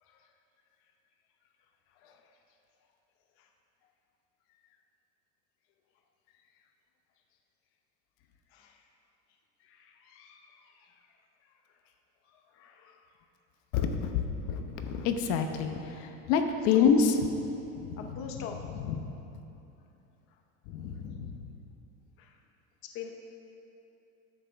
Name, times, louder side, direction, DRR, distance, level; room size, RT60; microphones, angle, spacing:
voice 1, 0.0-0.3 2.0-2.4 3.4-3.5 8.5-8.9 9.6-11.2 11.4-11.5 12.2-13.1 16.7-16.9 18.0-18.6 22.2-22.4 22.8-23.1, left 7 dB, 35° left, 3 dB, 0.7 m, -46 dB
voice 2, 13.7-17.2 17.8-18.5 18.8-18.9 20.7-21.5, left 6 dB, 60° left, 6 dB, 1.0 m, -28 dB
13.5 x 10.5 x 3.5 m, 2.9 s
cardioid pair, 170°, 37 cm